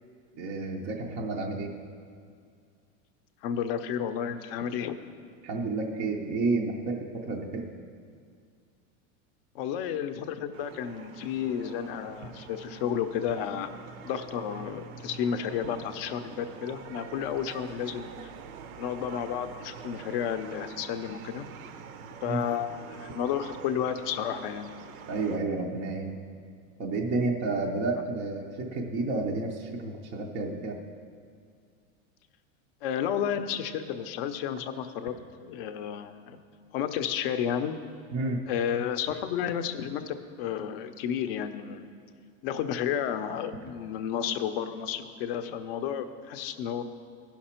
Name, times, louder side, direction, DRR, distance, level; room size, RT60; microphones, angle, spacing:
voice 1, 0.3-1.7 5.4-7.7 22.2-22.4 25.1-26.2 26.8-30.8 38.1-38.4, right 3 dB, 15° right, 0 dB, 0.4 m, -30 dB
voice 2, 3.4-5.0 9.5-13.7 14.0-18.3 18.8-21.5 22.2-24.8 32.8-35.2 35.4-36.4 36.7-37.8 38.5-41.9 42.4-46.8, left 8 dB, 45° left, 9 dB, 0.6 m, -32 dB
sound 1, 10.5-25.4, right 7 dB, 80° right, 0.7 m, -45 dB
15.5 x 5.9 x 4.3 m, 2.2 s
supercardioid pair, 160°, 42 cm